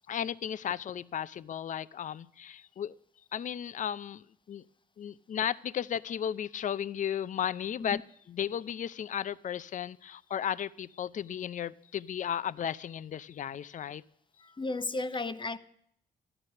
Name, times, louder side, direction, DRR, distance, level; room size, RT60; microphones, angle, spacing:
voice 1, 0.1-3.0 3.3-4.6 5.0-8.0 8.3-14.0, left 9 dB, 50° left, 0.5 m, -35 dB
voice 2, 14.4-15.6, left 3 dB, 30° left, 0.9 m, -34 dB
13.5 x 11.0 x 6.6 m
supercardioid pair, 60°, 16 cm